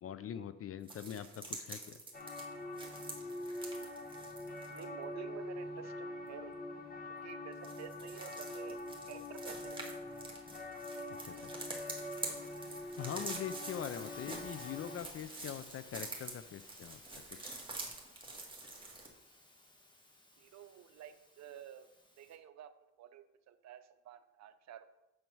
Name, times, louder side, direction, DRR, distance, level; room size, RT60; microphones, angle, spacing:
voice 1, 0.0-2.0 11.2-11.5 12.9-17.6, left 9 dB, 50° left, 13 dB, 0.5 m, -43 dB
sound 1, 0.9-4.8 7.5-19.1, right 2 dB, 15° right, 1.8 m, -47 dB
sound 2, 2.1-15.0, left 1 dB, 30° left, 1.2 m, -44 dB
voice 2, 4.7-6.6 7.1-9.7 20.4-21.9 22.2-25.0, right 10 dB, 65° right, 10 dB, 0.7 m, -51 dB
Hiss, 12.4-22.4, left 1 dB, 15° left, 1.5 m, -57 dB
7.7 x 4.6 x 5.5 m, 0.93 s
cardioid pair, 90°, 30 cm